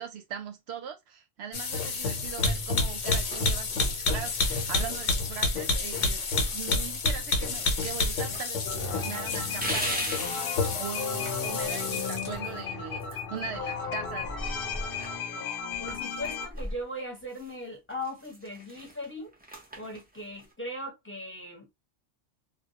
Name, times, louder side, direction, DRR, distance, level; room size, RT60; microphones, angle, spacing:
voice 1, 0.0-6.2 6.5-14.3, right 8 dB, 65° right, 0.8 m, -40 dB
sound 1, 1.5-12.4, left 3 dB, 80° left, 1.0 m, -29 dB
sound 2, 2.2-2.9 3.3-3.8 4.3-5.2 5.6-5.7 6.0-7.3 7.6-8.5 8.7-8.8 9.4-10.5 12.3-13.7 14.0-17.6 17.9-20.5, right 1 dB, 15° right, 0.3 m, -40 dB
sound 3, 8.6-16.5, left 5 dB, 60° left, 0.7 m, -35 dB
voice 2, 15.8-19.3 19.8-21.7, left 1 dB, 10° left, 0.7 m, -39 dB
2.2 x 2.0 x 2.8 m
omnidirectional pair, 1.2 m